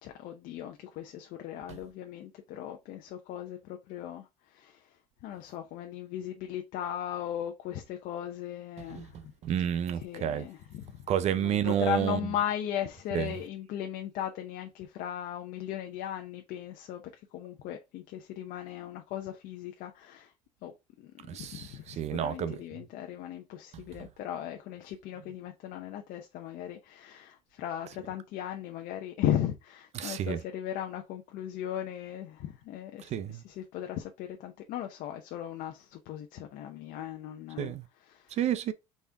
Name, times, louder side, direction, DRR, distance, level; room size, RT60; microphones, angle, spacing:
voice 1, 0.0-9.3 9.9-17.0 17.3-20.3 20.6-37.7 38.0-38.4, left 11 dB, 65° left, 0.7 m, -37 dB
voice 2, 9.4-10.5 11.1-12.2 13.1-13.3 21.3-22.6 30.0-30.4 33.1-33.4 37.6-37.8 38.4-38.7, right 10 dB, 45° right, 0.5 m, -30 dB
4.2 x 3.5 x 3.5 m
supercardioid pair, 110°, 16 cm